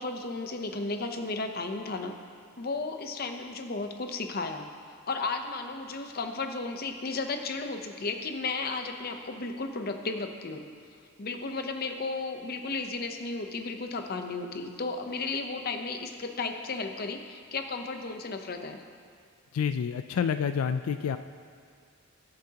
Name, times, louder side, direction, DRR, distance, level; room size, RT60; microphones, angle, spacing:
voice 1, 0.0-2.1 2.6-4.7 5.1-10.6 11.2-18.8, left 3 dB, 45° left, 6 dB, 0.7 m, -34 dB
voice 2, 19.5-21.2, left 7 dB, 90° left, 10 dB, 0.3 m, -28 dB
21.5 x 7.6 x 2.9 m, 2.2 s
head